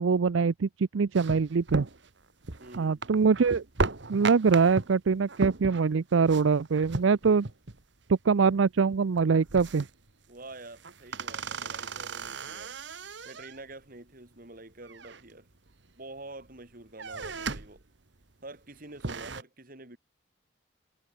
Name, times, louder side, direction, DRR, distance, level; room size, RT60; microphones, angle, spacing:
voice 1, 0.0-1.9 2.8-3.6 4.1-7.5 8.1-9.8, right 5 dB, 85° right, 0.5 m, -24 dB
sound 1, 1.1-7.8 8.1-8.2 8.5-8.9 9.2-10.1 10.5-13.7 14.8-15.7 16.2-16.6 16.9-17.8 18.2-18.3 18.8-19.4, right 3 dB, 65° right, 1.6 m, -36 dB
voice 2, 2.6-3.0 10.3-12.8 13.2-15.5 16.0-17.8 18.4-20.0, right 2 dB, 45° right, 3.5 m, -47 dB
head